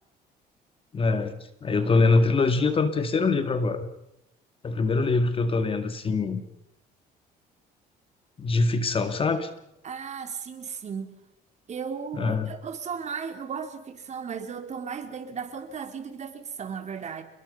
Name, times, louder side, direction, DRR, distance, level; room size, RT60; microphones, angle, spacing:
voice 1, 0.9-3.9 4.6-6.4 8.4-9.5 12.1-12.5, left 3 dB, 35° left, 10 dB, 2.1 m, -24 dB
voice 2, 9.8-11.1 11.7-17.2, right 6 dB, 45° right, 7 dB, 3.5 m, -35 dB
28.5 x 22.0 x 5.4 m, 0.84 s
cardioid pair, 110°, 17 cm